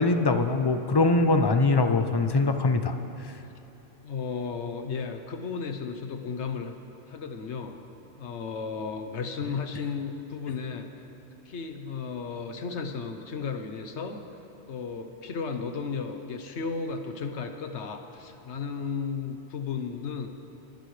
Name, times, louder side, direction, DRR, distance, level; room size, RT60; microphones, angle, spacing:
voice 1, 0.0-3.0, left 3 dB, 35° left, 7 dB, 0.4 m, -22 dB
voice 2, 4.0-6.7 7.1-7.8 8.2-10.9 11.4-14.2 14.7-20.3, left 5 dB, 70° left, 7 dB, 1.2 m, -34 dB
25.0 x 10.5 x 3.3 m, 2.9 s
omnidirectional pair, 1.2 m